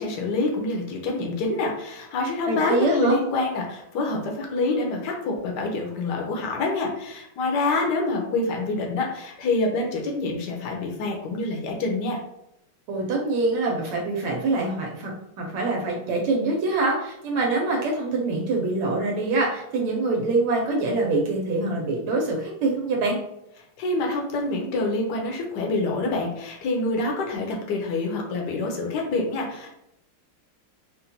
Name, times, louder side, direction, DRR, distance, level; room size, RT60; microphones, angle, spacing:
voice 1, 0.0-12.2 23.8-29.8, left 2 dB, 65° left, 1 dB, 1.1 m, -26 dB
voice 2, 2.5-3.2 12.9-15.1 15.4-23.2, right 3 dB, 85° right, -1 dB, 1.6 m, -24 dB
4.1 x 2.2 x 2.7 m, 0.81 s
omnidirectional pair, 2.4 m